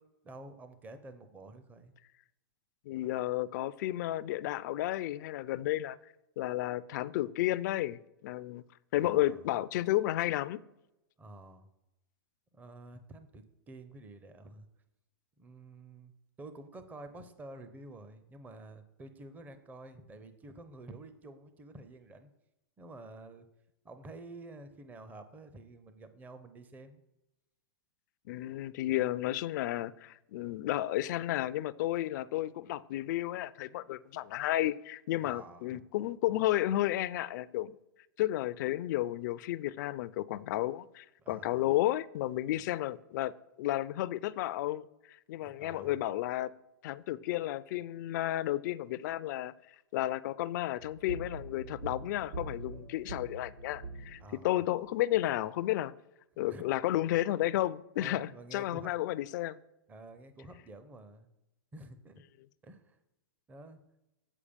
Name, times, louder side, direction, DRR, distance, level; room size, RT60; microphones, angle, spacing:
voice 1, 0.2-1.9 9.0-9.4 11.2-11.7 12.5-14.7 15.4-16.1 16.4-22.3 22.8-23.5 23.8-27.0 35.2-35.8 41.2-41.7 45.4-45.9 54.2-54.6 56.5-56.6 58.0-58.9 59.9-61.3 61.7-62.2 62.6-63.0 63.5-63.8, right 2 dB, 15° right, 0.6 m, -50 dB
voice 2, 2.9-6.0 6.4-8.6 8.9-10.6 28.3-37.8 38.2-46.5 46.8-49.5 49.9-55.9 56.4-59.6, left 14 dB, 55° left, 0.4 m, -32 dB
sound 1, 50.8-54.9, right 3 dB, 75° right, 1.5 m, -44 dB
8.5 x 4.9 x 5.1 m
hypercardioid pair, 130°, 12 cm